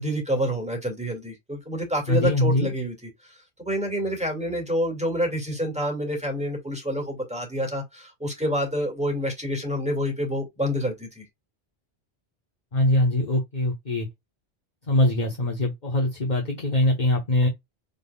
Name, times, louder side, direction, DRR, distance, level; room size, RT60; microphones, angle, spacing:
voice 1, 0.0-2.9 3.2-11.2, equal, 5° right, 2.0 m, -28 dB
voice 2, 2.1-2.7 12.7-14.1 14.9-17.5, left 1 dB, 45° left, 1.2 m, -22 dB
5.2 x 3.7 x 2.3 m
omnidirectional pair, 1.1 m